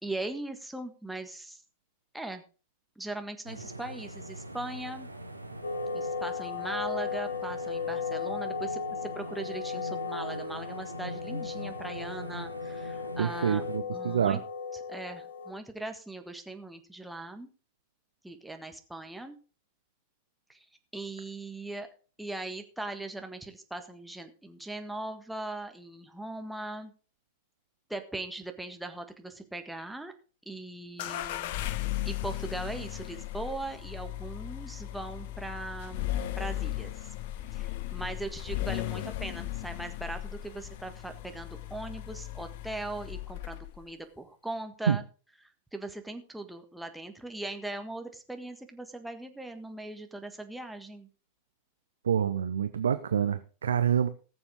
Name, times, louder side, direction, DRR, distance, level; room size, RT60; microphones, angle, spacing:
voice 1, 0.0-1.6 2.1-2.4 3.0-5.1 5.9-13.6 13.9-14.4 14.9-17.5 18.2-19.4 20.5-20.7 20.9-21.9 22.2-26.9 27.9-30.1 30.4-31.7 32.0-37.1 37.5-45.0 45.4-51.1, right 2 dB, 5° right, 6 dB, 1.6 m, -40 dB
sound 1, 3.4-13.8, equal, 85° right, 1.1 m, -42 dB
sound 2, 5.6-15.5, left 5 dB, 65° left, 1.8 m, -36 dB
voice 2, 13.2-14.4 44.9-45.0 52.0-54.1, right 8 dB, 70° right, 12 dB, 0.7 m, -27 dB
sound 3, 31.0-43.8, left 14 dB, 50° left, 0.7 m, -36 dB
19.5 x 7.1 x 3.8 m, 0.36 s
figure-of-eight pair, 90°, 0 cm